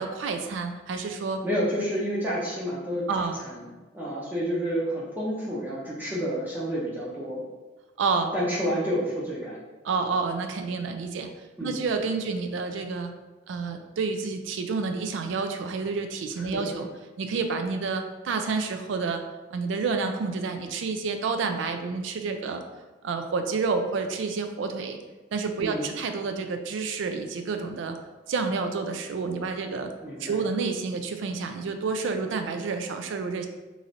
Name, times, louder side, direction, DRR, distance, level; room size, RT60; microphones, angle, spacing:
voice 1, 0.0-1.4 3.1-3.4 8.0-8.3 9.8-11.3 11.6-13.1 13.5-16.9 17.2-19.2 19.5-22.6 23.0-25.0 25.3-28.0 28.3-29.9 30.2-33.5, right 4 dB, 70° right, 6 dB, 0.3 m, -29 dB
voice 2, 1.4-7.4 8.3-9.6 11.6-11.9 16.4-16.6 25.6-25.9 30.0-30.4, equal, 10° right, -7 dB, 0.5 m, -30 dB
3.1 x 2.5 x 2.6 m, 1.2 s
head